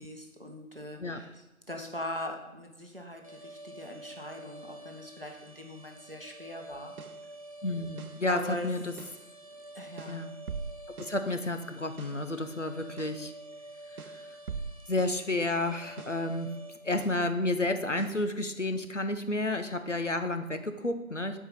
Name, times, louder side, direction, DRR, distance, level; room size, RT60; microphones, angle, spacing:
voice 1, 0.0-6.9 8.2-8.7 9.7-10.3, left 1 dB, 40° right, 2 dB, 1.0 m, -41 dB
sound 1, 3.2-16.8, right 1 dB, 75° left, 1.6 m, -49 dB
sound 2, 6.7-7.3 8.0-8.3 9.0-9.3 10.0-11.3 12.0-12.3 13.0-13.3 14.0-15.3 16.0-16.3 17.0-17.3 18.0-18.3, right 5 dB, 80° right, 0.6 m, -42 dB
voice 2, 7.6-8.9 10.1-10.4 11.0-13.3 13.9-14.2 14.9-16.5 16.8-21.4, left 2 dB, 55° left, 7 dB, 0.7 m, -31 dB
7.2 x 4.7 x 5.4 m, 1.0 s
figure-of-eight pair, 175°, 43 cm